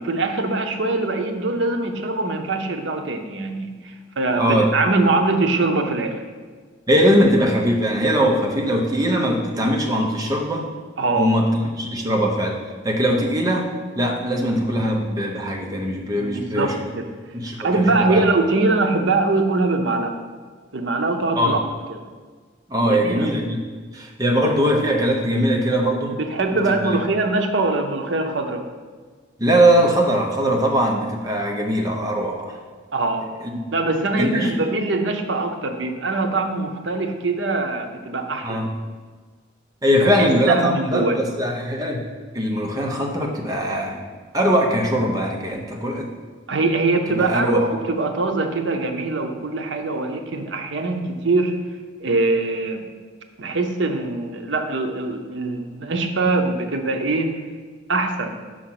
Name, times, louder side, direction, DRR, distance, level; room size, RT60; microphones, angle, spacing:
voice 1, 0.0-6.2 11.0-11.3 16.2-17.0 17.6-20.2 20.7-21.6 21.9-22.0 22.8-23.3 26.1-28.7 32.9-33.3 33.7-38.6 39.9-41.2 46.5-51.5 52.0-52.9 53.4-57.3 57.9-58.4, right 3 dB, 75° right, 5 dB, 0.7 m, -22 dB
voice 2, 4.4-4.7 6.9-10.7 11.1-13.7 14.0-16.7 17.3-18.2 21.4-21.6 22.7-23.6 23.9-26.2 26.8-27.0 29.4-32.6 33.4-33.6 34.2-34.6 38.4-38.7 39.8-42.0 42.3-44.0 44.3-46.1 47.1-47.6, equal, 20° right, 0 dB, 0.8 m, -21 dB
5.9 x 5.0 x 5.9 m, 1.5 s
head